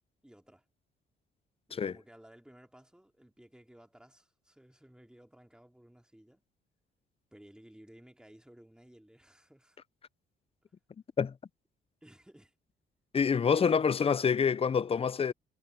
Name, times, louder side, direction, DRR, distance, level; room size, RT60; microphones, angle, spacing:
voice 1, 0.2-0.7 1.7-6.4 7.3-9.8 12.0-12.5 13.4-14.0, right 1 dB, 5° right, 3.9 m, -56 dB
voice 2, 13.1-15.3, left 6 dB, 30° left, 0.6 m, -27 dB
cardioid pair, 90°, 20 cm